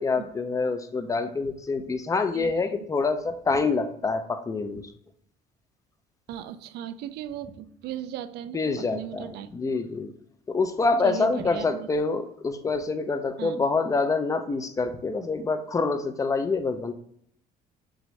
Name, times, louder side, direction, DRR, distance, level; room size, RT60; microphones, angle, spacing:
voice 1, 0.0-4.9 8.5-10.1 10.5-16.9, left 4 dB, 20° left, 9 dB, 0.5 m, -26 dB
voice 2, 2.3-2.8 6.3-9.5 11.0-11.9 13.4-13.6, right 11 dB, 75° right, 11 dB, 0.4 m, -37 dB
6.2 x 2.6 x 3.2 m, 0.68 s
cardioid pair, 110°, 17 cm